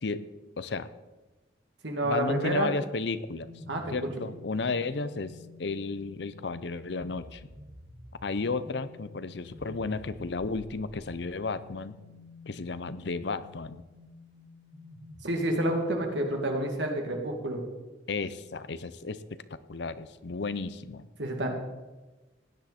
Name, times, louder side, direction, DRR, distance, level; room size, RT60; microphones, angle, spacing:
voice 1, 0.6-0.9 2.0-3.5 3.9-5.3 5.6-7.5 8.2-12.0 12.5-13.8 18.1-19.2 19.5-21.1, left 3 dB, 65° left, 14 dB, 0.6 m, -33 dB
voice 2, 1.8-2.7 3.7-3.9 15.2-17.6 21.2-21.5, right 1 dB, 70° right, 2 dB, 2.4 m, -29 dB
sound 1, 3.4-16.2, left 2 dB, 50° right, 2.1 m, -50 dB
16.0 x 10.5 x 4.3 m, 1.2 s
head